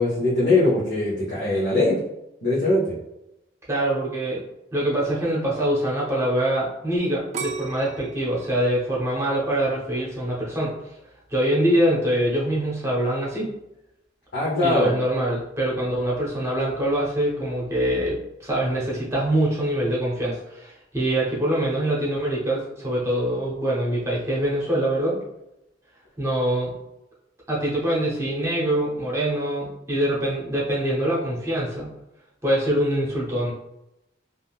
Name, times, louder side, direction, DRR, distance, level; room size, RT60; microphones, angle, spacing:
voice 1, 0.0-2.0 2.4-3.0 14.3-14.9, left 2 dB, 60° left, -8 dB, 0.9 m, -21 dB
voice 2, 3.7-4.4 4.7-10.7 11.3-13.5 14.6-25.2 26.2-26.7 27.5-31.9 32.4-33.5, right 1 dB, 15° right, -6 dB, 0.8 m, -24 dB
sound 1, 7.3-10.2 10.8-11.2, right 6 dB, 40° right, 0.4 m, -36 dB
3.6 x 2.5 x 2.3 m, 0.87 s
head